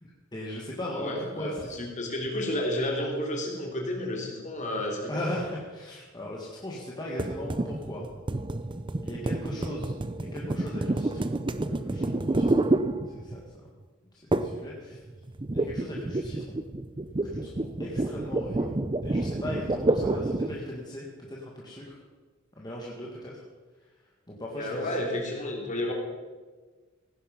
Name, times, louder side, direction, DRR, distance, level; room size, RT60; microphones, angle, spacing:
voice 1, 0.0-1.9 5.1-8.1 9.0-12.7 13.1-13.7 14.1-15.0 15.5-16.6 17.2-22.0 22.5-23.4 23.8-25.0, left 1 dB, 20° left, -4 dB, 1.9 m, -39 dB
voice 2, 1.0-1.5 1.8-5.3 24.6-25.9, left 1 dB, 40° left, 0 dB, 3.1 m, -31 dB
sound 1, 7.2-13.5 14.3-14.7 14.9-20.6, right 2 dB, 25° right, 0.5 m, -29 dB
17.0 x 10.0 x 5.4 m, 1.4 s
head